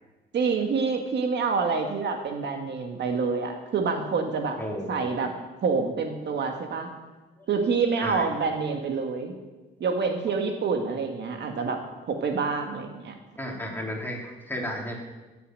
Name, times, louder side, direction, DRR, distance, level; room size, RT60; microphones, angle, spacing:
voice 1, 0.3-4.6 4.9-5.3 5.6-6.9 7.5-9.3 9.8-11.8 12.1-13.1, right 5 dB, 60° right, 4 dB, 1.8 m, -27 dB
voice 2, 4.6-5.0 8.0-8.3 13.4-15.0, equal, 10° left, -1 dB, 3.2 m, -33 dB
15.5 x 6.9 x 7.7 m, 1.2 s
cardioid pair, 90°, 20 cm